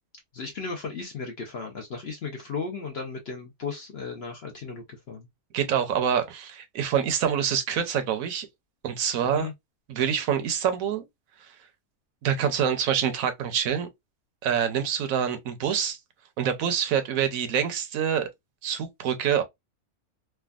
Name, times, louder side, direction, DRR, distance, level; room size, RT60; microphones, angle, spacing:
voice 1, 0.3-5.3 9.3-9.5, left 4 dB, 55° left, 0.8 m, -35 dB
voice 2, 5.5-8.5 8.8-9.5 9.9-11.1 12.2-13.9 14.4-16.0 16.4-18.3 18.6-19.4, right 8 dB, 75° right, 1.0 m, -26 dB
3.3 x 2.2 x 2.2 m
omnidirectional pair, 1.5 m